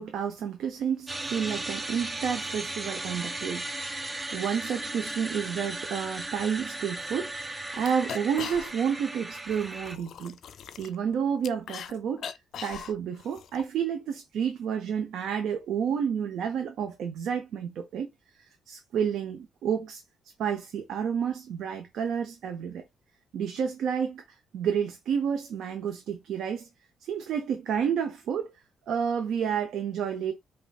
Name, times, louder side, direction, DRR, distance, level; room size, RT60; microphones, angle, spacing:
voice 1, 0.0-7.3 7.7-10.4 10.8-12.3 12.6-18.1 18.7-20.0 20.4-22.8 23.3-24.2 24.5-26.7 27.0-28.5 28.9-30.3, right 7 dB, 75° right, 0.6 m, -30 dB
sound 1, 1.1-10.0, right 2 dB, 20° right, 0.6 m, -36 dB
sound 2, 7.0-7.1 7.4-7.5 7.7-9.0 9.3-11.9 12.2-13.6, left 8 dB, 65° left, 0.4 m, -40 dB
5.1 x 2.6 x 2.3 m
cardioid pair, 90°, 0 cm